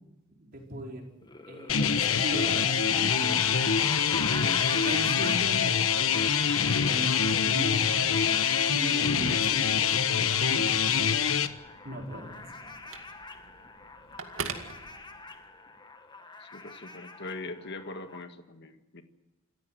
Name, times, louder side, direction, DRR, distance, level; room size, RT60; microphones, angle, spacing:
voice 1, 0.4-1.1 1.5-3.7 4.3-6.3 6.8-8.2 8.7-10.7 11.8-12.7, right 1 dB, 45° right, 1 dB, 5.0 m, -39 dB
sound 1, 1.2-18.2, left 3 dB, 20° left, 1.7 m, -41 dB
sound 2, 1.7-11.5, left 7 dB, 90° left, 1.2 m, -25 dB
Telephone, 10.8-15.6, right 5 dB, 75° right, 2.3 m, -43 dB
voice 2, 16.4-19.0, left 2 dB, 55° left, 7 dB, 1.8 m, -41 dB
27.5 x 14.5 x 7.8 m, 1.1 s
head